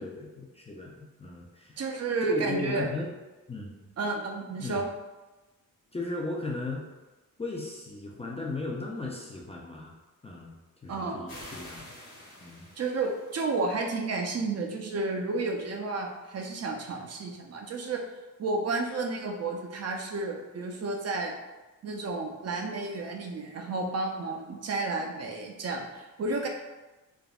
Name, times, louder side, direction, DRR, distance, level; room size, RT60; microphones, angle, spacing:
voice 1, 0.0-1.8 2.2-3.1 3.5-3.9 4.6-4.9 5.9-6.8 7.4-9.9 10.2-10.5 10.8-11.9 12.4-12.7, left 2 dB, 20° left, -2 dB, 0.3 m, -36 dB
voice 2, 1.8-2.9 4.0-4.9 10.9-11.3 12.8-18.0 18.4-21.3 21.8-26.5, right 3 dB, 50° right, 2 dB, 0.5 m, -31 dB
sound 1, 11.3-13.8, left 1 dB, 90° left, 1.1 m, -48 dB
3.4 x 2.0 x 2.3 m, 1.1 s
wide cardioid pair, 100°, 34 cm